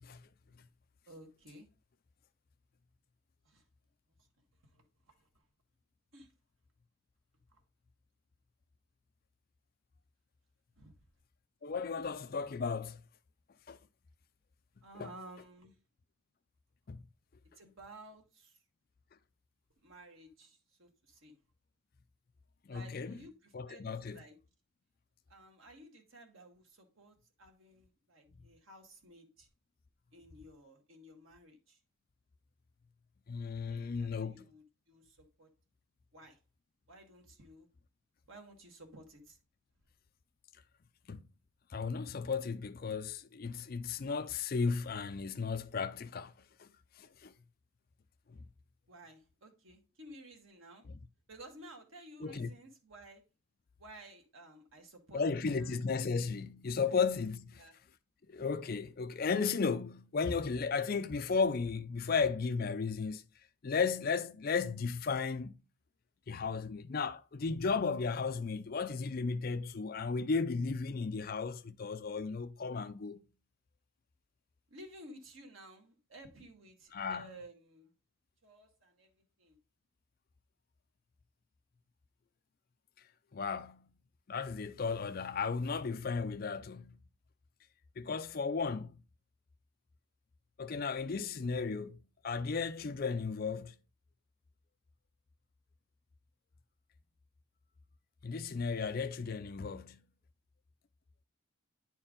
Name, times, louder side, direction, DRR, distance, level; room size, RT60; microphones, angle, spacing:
voice 1, 1.1-1.7 3.5-3.6 4.6-5.4 6.1-6.3 7.5-7.6 10.7-10.9 14.8-15.8 17.6-18.6 19.8-21.4 22.7-24.4 25.3-29.5 30.1-31.8 33.7-35.5 36.1-36.4 36.9-37.7 38.3-39.4 48.9-50.9 51.3-53.2 53.8-55.9 56.9-57.0 57.5-57.8 74.7-77.9 78.4-79.6, right 1 dB, 75° right, 1.8 m, -55 dB
voice 2, 11.6-13.0 13.7-13.8 15.0-15.1 16.9-17.0 22.7-23.1 23.5-24.2 33.3-34.5 41.1-41.2 41.7-46.3 46.6-46.7 47.0-47.3 48.3-48.4 52.2-52.5 55.1-57.6 58.3-63.2 63.6-65.5 66.3-73.2 76.9-77.3 83.3-83.8 84.3-87.0 88.0-89.0 90.6-92.0 92.2-93.7 98.2-100.0, left 5 dB, 45° left, 0.4 m, -35 dB
9.7 x 4.5 x 3.8 m
head